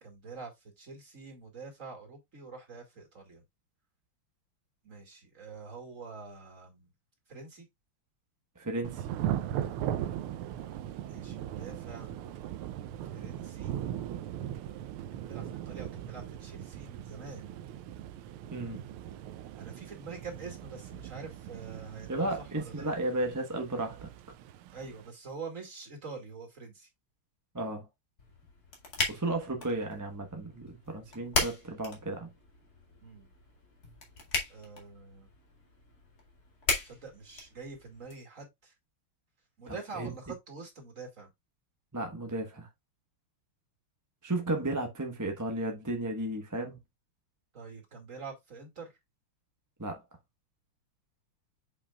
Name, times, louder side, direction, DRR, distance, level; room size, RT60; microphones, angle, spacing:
voice 1, 0.0-0.5 0.8-3.4 4.8-6.9 7.3-7.7 11.0-12.1 13.1-13.7 15.1-17.5 19.6-22.9 24.7-26.9 33.0-33.3 34.5-35.3 36.8-38.7 39.6-41.3 47.5-48.9, right 4 dB, 35° right, 2.5 m, -45 dB
voice 2, 8.6-9.1 18.5-18.8 22.1-24.1 27.5-27.9 29.1-32.3 39.7-40.1 41.9-42.7 44.2-46.8 49.8-50.0, right 2 dB, 15° right, 0.8 m, -34 dB
Thunder / Rain, 8.8-25.1, right 11 dB, 85° right, 1.5 m, -39 dB
sound 1, 28.2-38.1, left 3 dB, 45° left, 2.6 m, -37 dB
8.1 x 5.6 x 2.4 m
omnidirectional pair, 2.4 m